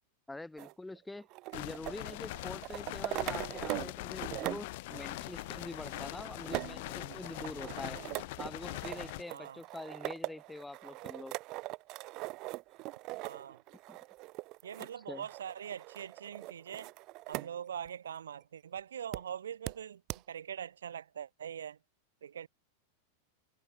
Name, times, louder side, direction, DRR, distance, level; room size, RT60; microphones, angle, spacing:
voice 1, 0.3-1.3 1.5-8.0 8.4-11.3 13.9-14.0 14.8-15.3, left 2 dB, 5° left, 3.0 m, -45 dB
sound 1, 0.6-3.9 4.2-17.5 17.9-18.0 19.1-19.2 19.7-19.8 20.1-20.2, right 21 dB, 40° right, 0.9 m, -41 dB
sound 2, 1.5-9.2, left 21 dB, 50° left, 2.7 m, -42 dB
voice 2, 9.3-9.6 13.2-13.6 14.6-16.9 17.3-20.0 20.3-21.8 22.2-22.5, right 8 dB, 65° right, 2.8 m, -42 dB
figure-of-eight pair, 90°, 0 cm